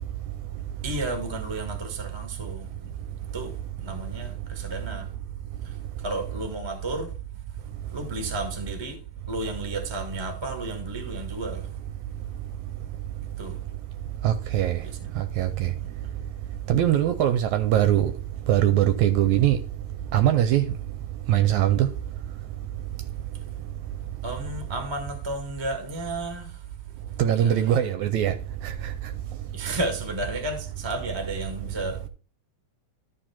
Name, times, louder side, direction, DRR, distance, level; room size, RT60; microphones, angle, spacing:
voice 1, 0.8-2.7 3.3-3.5 3.8-5.1 6.0-7.1 7.9-9.0 9.3-11.7 13.4-13.6 14.8-15.1 24.2-26.6 27.3-27.6 29.5-32.0, right 1 dB, 25° right, 0.6 m, -33 dB
voice 2, 14.2-14.8 15.2-15.7 16.7-18.1 18.5-19.6 20.1-20.6 21.3-21.9 27.2-28.3 28.6-28.7, right 11 dB, 80° right, 1.8 m, -21 dB
13.0 x 4.6 x 4.4 m
omnidirectional pair, 3.8 m